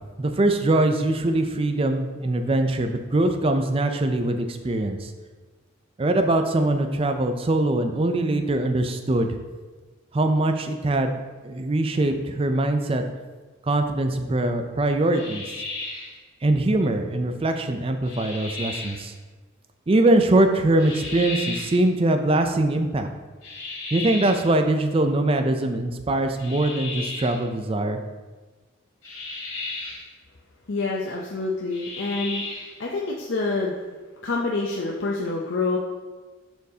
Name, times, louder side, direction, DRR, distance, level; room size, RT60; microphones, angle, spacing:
voice 1, 0.2-5.1 6.0-9.4 10.1-13.0 13.7-15.5 16.4-19.1 19.9-23.1 23.9-28.0, right 2 dB, 25° right, 6 dB, 0.4 m, -22 dB
sound 1, 15.1-16.2 18.0-19.0 20.8-21.8 23.4-24.5 26.4-27.4 29.0-30.1 31.7-32.8, left 3 dB, 85° left, 1.5 m, -34 dB
voice 2, 30.7-32.4 32.8-33.7 34.2-35.8, left 3 dB, 60° left, -2 dB, 0.6 m, -27 dB
7.9 x 4.5 x 2.8 m, 1.3 s
head